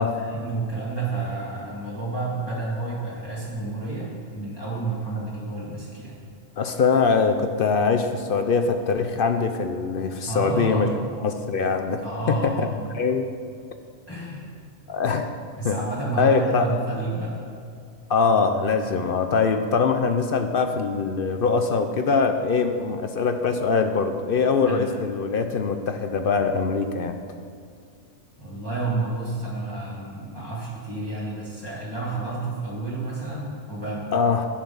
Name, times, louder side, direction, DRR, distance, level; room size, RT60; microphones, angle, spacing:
voice 1, 0.0-6.2 10.3-11.0 12.0-12.8 14.1-14.4 15.6-17.3 24.7-24.9 28.4-34.1, right 3 dB, 20° left, -7 dB, 1.8 m, -30 dB
voice 2, 6.6-10.9 11.2-12.7 12.9-13.3 14.9-15.3 15.6-15.8 16.2-16.7 18.1-27.2 34.1-34.5, left 5 dB, 55° left, 7 dB, 0.7 m, -23 dB
11.0 x 7.2 x 5.5 m, 2.3 s
omnidirectional pair, 1.4 m